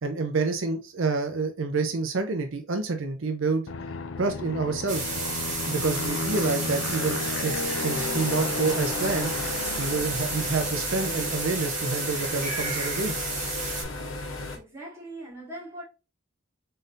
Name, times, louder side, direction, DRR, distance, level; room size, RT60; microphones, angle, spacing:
voice 1, 0.0-3.6 4.2-5.1 5.7-9.3 9.8-13.1, right 3 dB, 75° right, 0.6 m, -28 dB
Aircraft, 3.7-11.0, left 4 dB, 65° left, 0.4 m, -33 dB
sound 1, 4.9-13.8, right 3 dB, 40° right, 1.5 m, -32 dB
sound 2, 7.9-14.6, left 2 dB, 85° left, 0.9 m, -35 dB
voice 2, 14.5-15.8, right 1 dB, 15° right, 1.8 m, -40 dB
3.9 x 3.8 x 2.5 m
head